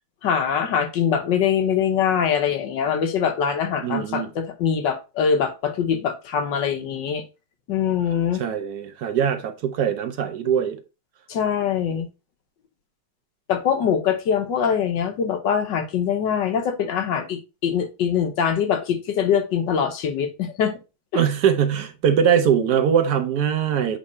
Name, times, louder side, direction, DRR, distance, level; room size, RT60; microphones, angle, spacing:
voice 1, 0.2-7.2 7.7-8.4 11.3-12.1 13.5-20.8 21.1-21.2, left 7 dB, 85° left, 1.6 m, -23 dB
voice 2, 3.8-4.3 8.4-10.8 21.1-24.0, right 8 dB, 70° right, 1.2 m, -21 dB
7.5 x 3.2 x 4.2 m
omnidirectional pair, 1.9 m